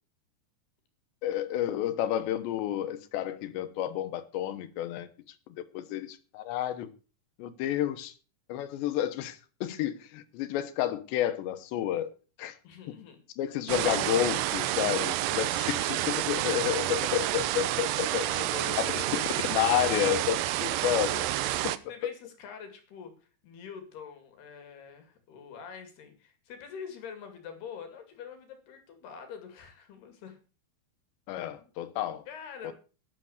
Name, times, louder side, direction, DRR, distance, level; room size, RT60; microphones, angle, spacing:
voice 1, 1.2-5.1 5.5-6.9 7.4-8.1 8.5-12.1 12.4-12.6 12.9-13.0 13.4-18.3 18.8-19.0 19.5-21.3 21.6-21.7 22.0-22.1 31.3-32.3 32.6-32.7, left 12 dB, 85° left, 3.4 m, -30 dB
voice 2, 12.6-13.2 17.6-17.9 18.2-19.3 21.9-23.1 23.4-30.4 31.6-31.7 32.3-32.7, left 6 dB, 70° left, 4.3 m, -45 dB
sound 1, 13.7-21.8, right 15 dB, 80° right, 2.8 m, -29 dB
12.0 x 10.5 x 6.5 m
omnidirectional pair, 4.9 m